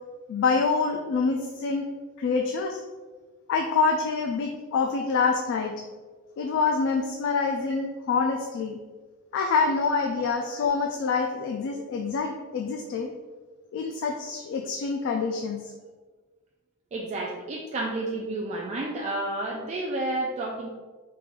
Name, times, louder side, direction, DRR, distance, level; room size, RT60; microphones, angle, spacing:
voice 1, 0.3-1.9 2.2-2.8 3.5-5.7 6.4-8.8 9.3-13.1 13.7-15.7, left 4 dB, 60° left, 1 dB, 0.3 m, -26 dB
voice 2, 16.9-20.7, right 2 dB, 30° right, -2 dB, 0.3 m, -30 dB
3.3 x 2.4 x 3.5 m, 1.4 s
head